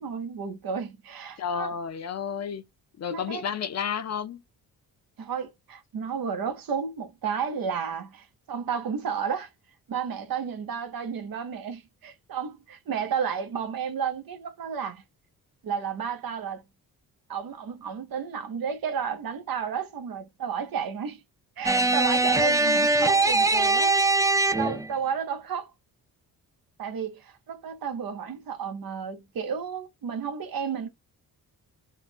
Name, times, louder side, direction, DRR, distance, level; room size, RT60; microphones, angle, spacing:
voice 1, 0.0-1.7 3.1-3.4 5.2-9.5 9.9-15.0 15.6-16.6 17.3-21.2 21.6-24.0 24.2-25.7 26.8-30.9, right 7 dB, 70° right, 1.2 m, -32 dB
voice 2, 1.4-2.6 3.0-4.4, left 7 dB, 45° left, 0.7 m, -31 dB
sound 1, 21.6-24.9, right 2 dB, 10° right, 0.4 m, -22 dB
3.7 x 2.4 x 4.2 m
cardioid pair, 125°, 36 cm